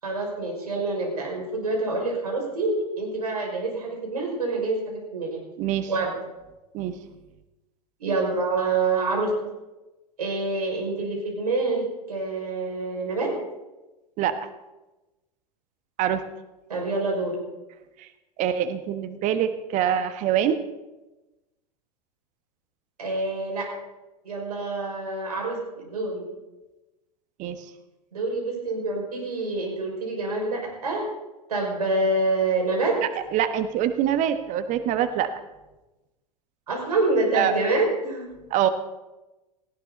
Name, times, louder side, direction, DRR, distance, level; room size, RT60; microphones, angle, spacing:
voice 1, 0.0-5.4 5.9-6.1 8.0-9.3 10.2-13.3 16.7-17.3 23.0-23.7 24.2-26.2 28.1-31.0 31.5-33.0 36.7-38.3, right 3 dB, 70° right, 0 dB, 6.1 m, -26 dB
voice 2, 5.6-5.9 6.7-6.9 14.2-14.4 16.0-16.3 18.0-18.1 18.4-20.6 27.4-27.6 33.3-35.3 37.3-37.5 38.5-38.7, right 10 dB, 40° right, 9 dB, 1.3 m, -24 dB
18.5 x 17.0 x 4.2 m, 1.0 s
figure-of-eight pair, 85°, 20 cm